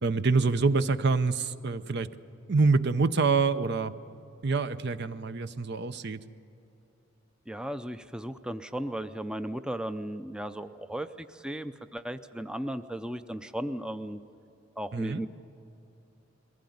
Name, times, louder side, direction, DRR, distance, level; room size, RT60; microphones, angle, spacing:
voice 1, 0.0-2.1 2.5-3.9 4.4-6.2 14.9-15.2, right 4 dB, 60° right, 12 dB, 0.7 m, -26 dB
voice 2, 7.5-14.2 14.8-15.3, right 1 dB, 5° right, 10 dB, 0.5 m, -36 dB
22.0 x 16.0 x 9.4 m, 2.9 s
head